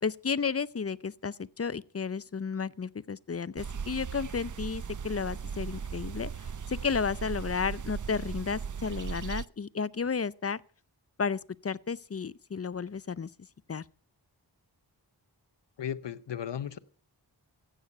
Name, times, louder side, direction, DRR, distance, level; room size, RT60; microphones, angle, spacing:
voice 1, 0.0-10.6 11.2-13.3 13.7-13.8, left 5 dB, 35° left, 0.6 m, -33 dB
sound 1, 3.6-9.4, right 6 dB, 45° right, 0.6 m, -37 dB
voice 2, 15.8-16.8, left 9 dB, 75° left, 0.9 m, -35 dB
15.0 x 8.8 x 5.7 m
cardioid pair, 45°, 42 cm